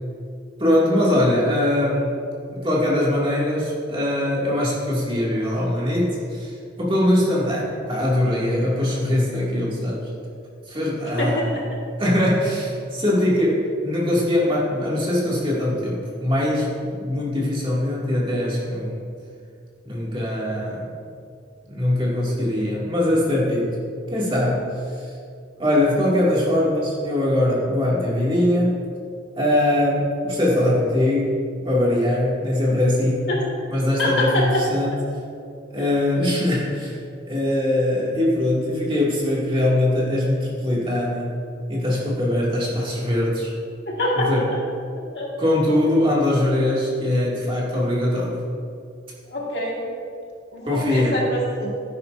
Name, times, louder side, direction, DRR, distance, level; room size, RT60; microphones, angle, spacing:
voice 1, 0.6-2.1 2.5-10.1 10.7-11.5 12.0-19.0 19.8-20.9 21.7-23.8 24.1-25.1 25.6-28.8 29.4-31.4 31.6-33.3 33.7-35.0 35.7-37.0 37.3-41.4 41.7-43.5 44.1-44.5 45.4-48.4 50.7-51.2, left 1 dB, 25° right, -6 dB, 2.3 m, -22 dB
voice 2, 34.0-34.6 43.9-44.3 45.1-45.3 49.3-49.8 50.5-51.7, left 1 dB, 60° left, -3 dB, 1.9 m, -24 dB
12.0 x 10.5 x 2.6 m, 2.4 s
head